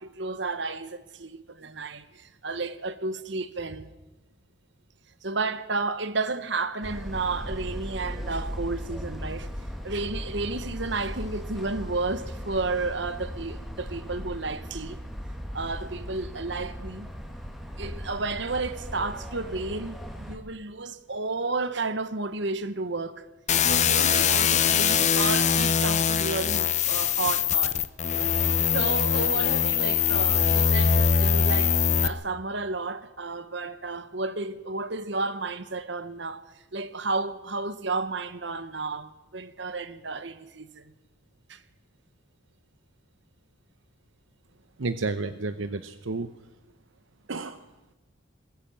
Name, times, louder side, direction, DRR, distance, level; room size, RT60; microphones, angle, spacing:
voice 1, 0.0-3.9 5.2-9.5 9.8-15.0 15.5-17.1 17.8-23.2 23.6-27.8 28.7-36.4 36.7-40.9 41.5-41.6, right 3 dB, 65° right, 1.2 m, -32 dB
sound 1, 6.8-20.4, equal, ahead, 2.2 m, -37 dB
sound 2, 23.5-32.1, left 7 dB, 35° left, 0.9 m, -22 dB
voice 2, 44.8-46.3 47.3-47.7, right 3 dB, 80° right, 0.9 m, -31 dB
21.0 x 14.5 x 8.9 m
head